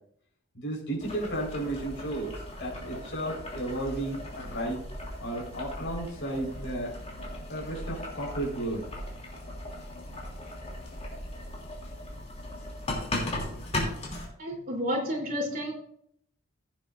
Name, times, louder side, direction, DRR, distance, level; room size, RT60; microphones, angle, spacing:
voice 1, 0.5-2.3 2.6-4.8 5.2-6.9 7.5-8.9, right 1 dB, 60° left, -3 dB, 4.5 m, -33 dB
Boiling, 1.0-14.3, left 1 dB, 30° left, 2.9 m, -37 dB
voice 2, 14.4-15.7, equal, 45° right, -1 dB, 3.4 m, -30 dB
15.5 x 8.3 x 2.6 m, 0.68 s
head